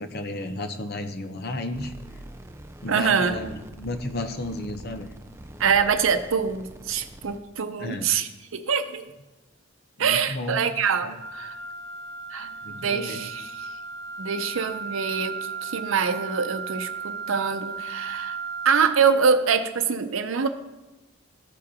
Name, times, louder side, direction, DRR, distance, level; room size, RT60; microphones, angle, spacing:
voice 1, 0.0-1.9 2.8-5.1 7.8-8.2 10.0-10.6 11.0-11.2 12.6-13.3, left 2 dB, 50° left, 7 dB, 0.7 m, -33 dB
sound 1, 1.7-7.4, right 1 dB, 15° right, 0.5 m, -44 dB
voice 2, 2.9-3.4 5.6-9.1 10.0-11.5 12.3-13.5 14.2-18.4 18.6-20.5, right 6 dB, 80° right, 8 dB, 0.6 m, -25 dB
Wind instrument woodwind instrument, 11.2-19.0, right 5 dB, 75° left, 3.1 m, -35 dB
15.0 x 5.1 x 2.8 m, 1.1 s
head